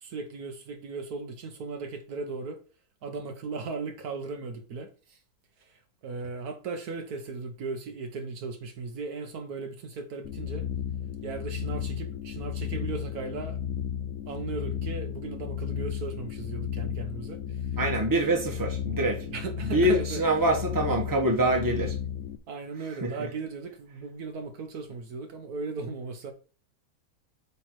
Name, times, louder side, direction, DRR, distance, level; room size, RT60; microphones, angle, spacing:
voice 1, 0.0-2.6 3.0-5.2 5.6-10.6 11.2-13.6 14.3-17.6 18.1-18.3 19.2-20.2 22.5-26.3, right 4 dB, 80° right, 1.6 m, -37 dB
sound 1, 10.2-22.4, left 9 dB, 60° left, 0.9 m, -34 dB
voice 2, 17.8-19.2 19.6-22.0 23.0-23.1, right 1 dB, 15° right, 1.3 m, -25 dB
8.2 x 3.5 x 4.6 m
omnidirectional pair, 1.6 m